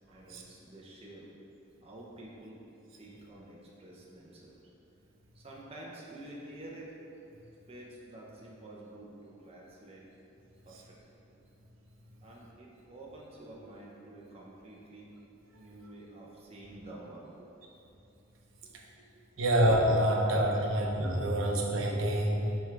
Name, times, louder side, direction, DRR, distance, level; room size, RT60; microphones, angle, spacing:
voice 1, 0.1-1.4 1.8-2.6 3.0-4.6 5.3-6.9 7.7-10.1 10.6-11.2 12.2-15.2 15.5-17.5 18.6-19.2 20.5-20.8, right 1 dB, 30° right, -4 dB, 0.8 m, -49 dB
voice 2, 19.4-22.6, right 1 dB, 80° right, 0 dB, 0.8 m, -27 dB
5.4 x 4.5 x 4.7 m, 2.8 s
head